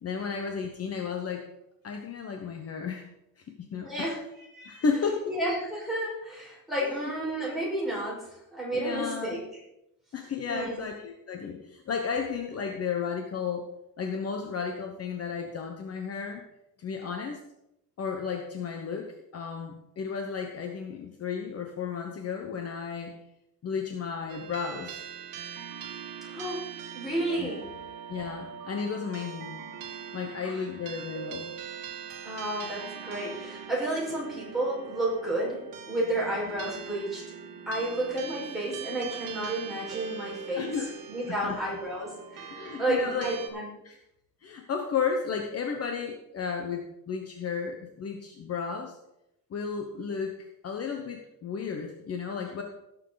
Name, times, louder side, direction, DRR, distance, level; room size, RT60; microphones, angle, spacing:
voice 1, 0.0-1.5 1.8-3.0 3.4-4.1 4.7-5.3 6.8-7.0 8.7-9.3 10.1-13.7 14.0-16.4 16.8-17.4 18.0-19.1 19.3-23.1 23.6-25.0 27.4-27.6 28.1-29.6 30.1-31.5 40.5-40.9 41.3-41.6 42.5-43.3 43.8-44.0 44.4-49.0 49.5-52.6, left 6 dB, 45° left, 3 dB, 1.1 m, -33 dB
voice 2, 3.8-4.9 5.3-9.4 10.5-10.9 26.2-26.7 26.9-27.6 30.4-30.6 32.2-35.6 35.9-37.2 37.7-40.7 41.1-43.7, right 1 dB, ahead, -6 dB, 5.3 m, -31 dB
sound 1, 24.3-43.5, right 7 dB, 65° right, 1.7 m, -41 dB
16.5 x 7.4 x 4.0 m, 0.86 s
cardioid pair, 155°, 35 cm